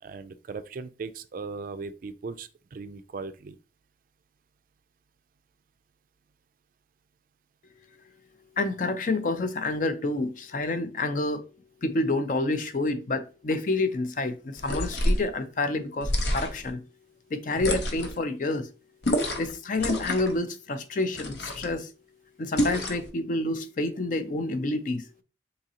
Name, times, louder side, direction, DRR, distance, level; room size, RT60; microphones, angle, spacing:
voice 1, 0.0-3.6, right 4 dB, 50° right, 0.3 m, -38 dB
voice 2, 8.6-11.4 11.8-16.8 17.3-18.7 19.4-21.9 22.4-25.1, left 2 dB, 45° left, 0.5 m, -28 dB
sound 1, 14.6-15.3 16.0-16.7 17.6-18.2 19.0-19.5 19.8-20.4 21.1-21.7 22.6-23.1, left 1 dB, 70° left, 0.8 m, -28 dB
4.0 x 3.7 x 2.8 m
head